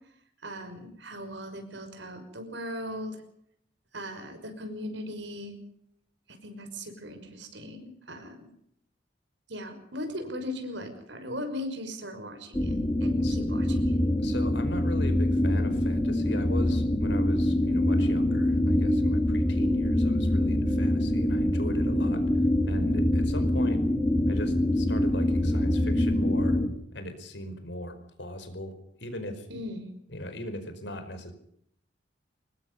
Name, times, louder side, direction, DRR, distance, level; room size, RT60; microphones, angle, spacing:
voice 1, 0.4-3.2 3.9-5.6 6.3-8.5 9.5-14.0 29.5-29.9, left 1 dB, 75° right, 6 dB, 5.9 m, -38 dB
sound 1, 12.5-26.7, left 1 dB, 15° left, 3.2 m, -25 dB
voice 2, 14.2-22.2 22.7-23.8 24.3-26.6 26.9-28.7 29.0-29.5 30.1-31.3, left 1 dB, 70° left, 9 dB, 4.9 m, -39 dB
24.5 x 21.0 x 5.5 m, 0.70 s
head